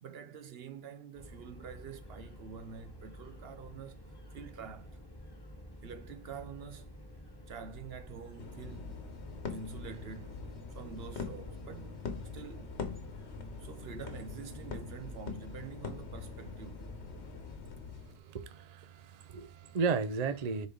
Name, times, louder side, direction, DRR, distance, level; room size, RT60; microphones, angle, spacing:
voice 1, 0.0-3.9 4.3-5.0 5.8-6.9 7.5-9.0 9.5-12.7 13.6-16.9 19.7-19.8, right 6 dB, 65° right, 0.9 m, -47 dB
sound 1, 1.1-17.6, equal, 20° left, 1.3 m, -51 dB
sound 2, 8.4-18.2, left 5 dB, 80° left, 1.3 m, -43 dB
voice 2, 18.0-20.7, right 5 dB, 45° right, 0.6 m, -34 dB
6.8 x 4.2 x 3.8 m
omnidirectional pair, 1.1 m